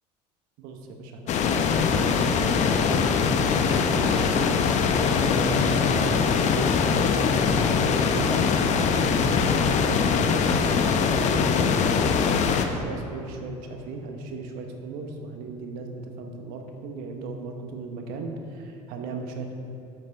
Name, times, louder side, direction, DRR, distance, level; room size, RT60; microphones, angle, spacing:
voice 1, 0.6-3.1 3.5-4.6 5.3-19.6, right 3 dB, 70° right, 4 dB, 1.1 m, -37 dB
sound 1, 1.3-12.7, left 6 dB, 50° left, 0.7 m, -22 dB
8.9 x 7.6 x 3.5 m, 2.8 s
supercardioid pair, 90°, 16 cm